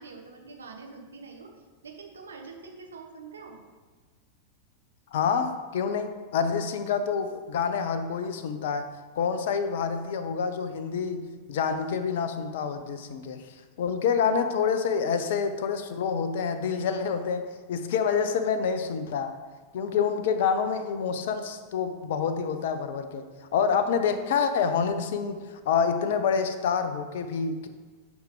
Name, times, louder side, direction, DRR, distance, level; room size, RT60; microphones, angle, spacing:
voice 1, 0.0-1.5 1.8-3.6, right 4 dB, 70° right, 1 dB, 1.2 m, -45 dB
voice 2, 5.1-13.4 13.8-19.3 19.7-27.7, left 6 dB, 55° left, 9 dB, 0.7 m, -27 dB
10.5 x 5.1 x 3.8 m, 1.4 s
figure-of-eight pair, 90°, 0 cm